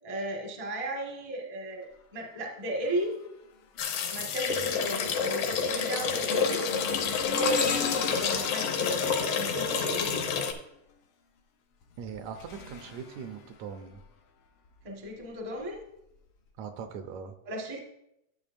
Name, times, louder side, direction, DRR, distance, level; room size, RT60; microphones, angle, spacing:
voice 1, 0.0-3.1 4.1-6.7 7.2-10.2 14.8-15.8 17.4-17.8, right 1 dB, 35° right, -1 dB, 0.5 m, -35 dB
sound 1, 2.9-3.3 3.7-10.6 11.8-14.0 14.6-14.8 15.7-15.8, left 5 dB, 85° left, 1.1 m, -38 dB
sound 2, 3.8-10.5, left 6 dB, 70° left, 1.4 m, -29 dB
voice 2, 12.0-14.0 16.6-17.4, right 6 dB, 80° right, 7 dB, 2.0 m, -40 dB
12.5 x 7.1 x 2.5 m, 0.83 s
omnidirectional pair, 3.3 m